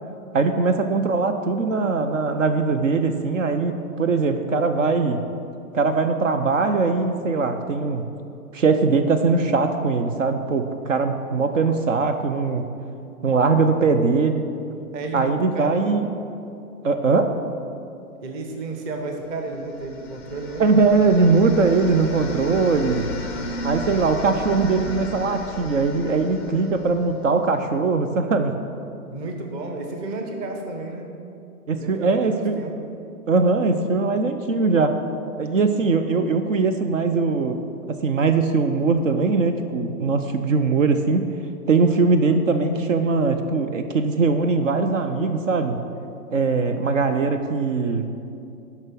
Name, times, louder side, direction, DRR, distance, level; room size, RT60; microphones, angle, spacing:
voice 1, 0.3-5.2 5.7-8.1 8.5-12.7 13.2-14.5 15.1-16.1 16.8-17.3 20.6-23.1 23.6-28.5 31.7-32.6 33.3-34.9 35.4-37.6 37.9-41.3 41.7-45.8 46.3-48.1, right 4 dB, 60° right, 8 dB, 0.7 m, -21 dB
voice 2, 14.9-16.0 18.2-20.6 29.1-31.1 31.7-32.7, right 3 dB, 20° right, 3 dB, 0.8 m, -32 dB
sound 1, 19.4-27.4, left 1 dB, ahead, 0.5 m, -34 dB
10.5 x 5.8 x 6.2 m, 2.6 s
figure-of-eight pair, 115°, 44 cm